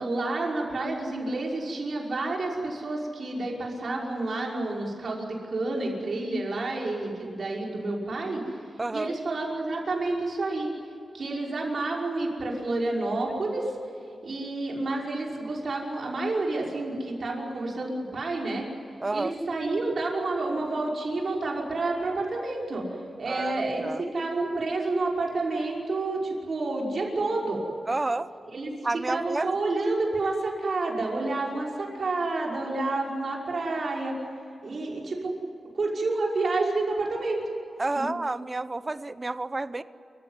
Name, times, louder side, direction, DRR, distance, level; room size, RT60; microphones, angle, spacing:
voice 1, 0.0-8.4 8.9-10.7 11.1-13.7 14.2-18.7 19.1-22.8 23.2-27.6 28.5-28.7 29.1-34.2 34.6-35.3 35.7-37.4, right 2 dB, 55° right, -1 dB, 5.6 m, -29 dB
voice 2, 8.8-9.1 19.0-19.3 23.3-24.0 27.9-28.3 28.8-29.5 37.8-39.8, right 2 dB, 25° right, 14 dB, 0.8 m, -30 dB
28.0 x 15.5 x 9.8 m, 2.6 s
wide cardioid pair, 120°, 0 cm